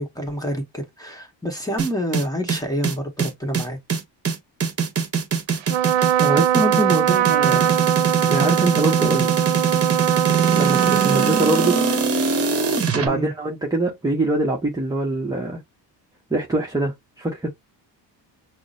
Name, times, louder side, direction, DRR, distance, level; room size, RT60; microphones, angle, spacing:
voice 1, 0.0-3.8 13.0-13.3, equal, 10° left, 1.1 m, -28 dB
sound 1, 1.8-13.1, right 5 dB, 35° right, 1.0 m, -22 dB
Trumpet, 5.6-12.5, right 11 dB, 90° right, 0.7 m, -21 dB
voice 2, 6.1-7.8 8.3-9.3 10.5-11.8 12.9-15.6 16.3-17.5, right 2 dB, 10° right, 0.8 m, -23 dB
5.9 x 2.0 x 2.6 m
cardioid pair, 120°, 43 cm